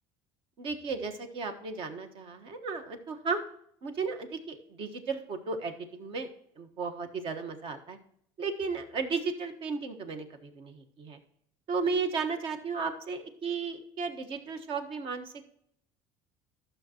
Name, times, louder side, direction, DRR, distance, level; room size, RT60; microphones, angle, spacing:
voice 1, 0.6-3.4 3.8-6.3 6.5-8.0 8.4-11.2 11.7-15.4, right 4 dB, 50° right, 7 dB, 1.4 m, -34 dB
12.5 x 6.7 x 3.0 m, 0.69 s
cardioid pair, 125°, 11 cm